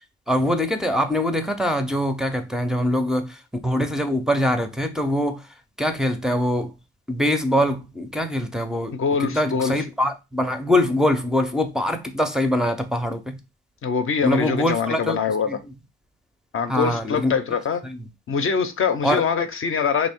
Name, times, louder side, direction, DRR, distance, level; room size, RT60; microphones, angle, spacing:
voice 1, 0.3-5.5 5.8-6.7 7.1-13.4 14.2-15.2 15.5-15.6 16.7-17.3 17.8-18.0 19.0-19.2, left 1 dB, ahead, 0.5 m, -23 dB
voice 2, 8.9-9.7 13.8-15.5 16.5-17.8 18.3-20.1, left 6 dB, 45° left, 0.6 m, -23 dB
3.5 x 2.6 x 3.5 m
cardioid pair, 90°, 30 cm